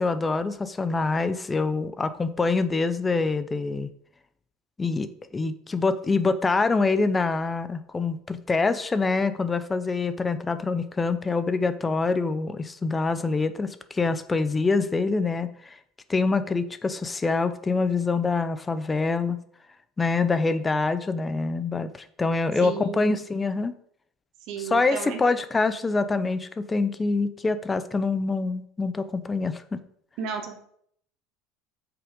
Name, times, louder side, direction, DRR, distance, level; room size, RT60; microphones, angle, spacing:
voice 1, 0.0-3.9 4.8-15.8 16.1-19.4 20.0-23.8 24.6-29.8, left 3 dB, 15° left, 12 dB, 0.6 m, -25 dB
voice 2, 22.6-23.2 24.5-25.2 30.2-30.6, right 7 dB, 55° right, 4 dB, 1.8 m, -33 dB
8.4 x 5.9 x 5.4 m, 0.66 s
cardioid pair, 160°, 0 cm